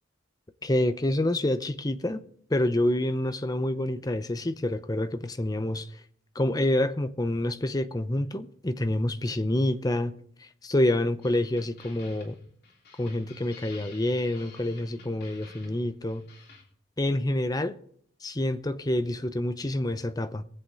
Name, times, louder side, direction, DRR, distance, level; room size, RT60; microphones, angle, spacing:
voice 1, 0.6-2.2 2.5-5.9 6.3-10.1 10.6-12.4 13.0-16.3 17.0-17.8 18.2-20.4, left 1 dB, 20° left, 0.7 m, -27 dB
sound 1, 11.2-16.6, left 4 dB, 55° left, 3.5 m, -52 dB
23.0 x 8.1 x 3.9 m
head